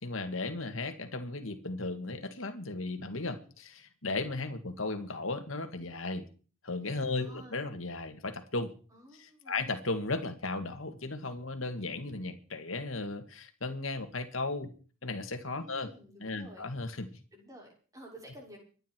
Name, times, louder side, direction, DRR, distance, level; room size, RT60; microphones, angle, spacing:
voice 1, 0.0-6.3 6.6-8.7 9.2-14.7 15.0-15.9 16.2-17.1, left 3 dB, 75° left, 7 dB, 2.1 m, -36 dB
voice 2, 7.0-7.7 8.9-9.8 15.6-16.7 17.3-18.6, equal, 15° right, -1 dB, 6.2 m, -52 dB
25.0 x 10.5 x 4.6 m, 0.39 s
head